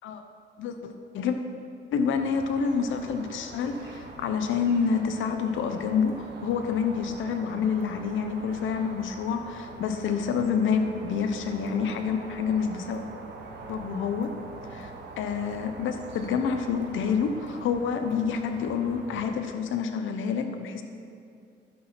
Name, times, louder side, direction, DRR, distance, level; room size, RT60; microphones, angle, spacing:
voice 1, 0.6-1.4 1.9-13.0 13.7-14.3 14.7-14.9 15.2-20.8, left 6 dB, 75° left, 6 dB, 0.8 m, -28 dB
sound 1, 2.1-19.3, right 3 dB, 60° right, 1.4 m, -44 dB
12.0 x 6.1 x 5.7 m, 2.4 s
cardioid pair, 90°, 20 cm